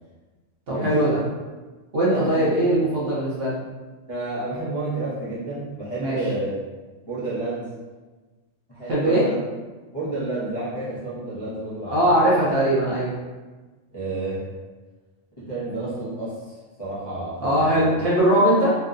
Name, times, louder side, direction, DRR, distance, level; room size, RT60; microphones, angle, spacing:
voice 1, 0.7-1.2 1.9-3.5 6.0-6.2 8.9-9.2 11.9-13.1 17.4-18.8, right 1 dB, 55° right, -7 dB, 0.7 m, -20 dB
voice 2, 2.1-2.4 4.1-6.5 7.1-7.7 8.7-9.4 9.9-12.2 13.9-14.4 15.4-16.5 16.8-17.8, right 2 dB, 30° left, -12 dB, 0.5 m, -30 dB
2.9 x 2.0 x 2.4 m, 1.3 s
omnidirectional pair, 1.4 m